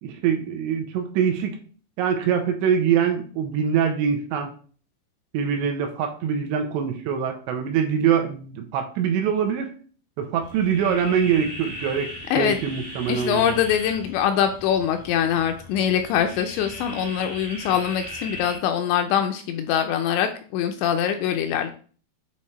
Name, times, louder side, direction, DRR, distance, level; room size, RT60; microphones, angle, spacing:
voice 1, 0.0-1.6 2.0-4.5 5.3-9.7 10.2-13.6, right 7 dB, 80° right, 4 dB, 2.8 m, -24 dB
sound 1, 10.4-18.6, equal, 30° right, 0.4 m, -38 dB
voice 2, 13.1-21.7, left 9 dB, 85° left, 6 dB, 2.6 m, -23 dB
8.3 x 3.3 x 4.3 m, 0.42 s
omnidirectional pair, 5.4 m